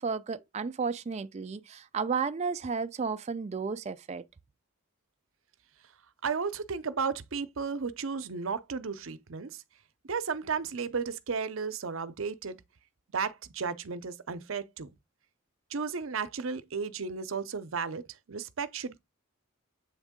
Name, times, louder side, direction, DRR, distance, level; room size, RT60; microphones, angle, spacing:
voice 1, 0.0-4.2, right 5 dB, 30° right, 0.4 m, -33 dB
voice 2, 6.2-9.6 10.0-12.6 13.1-14.9 15.7-19.0, right 5 dB, 70° right, 0.7 m, -34 dB
8.0 x 3.6 x 3.7 m
head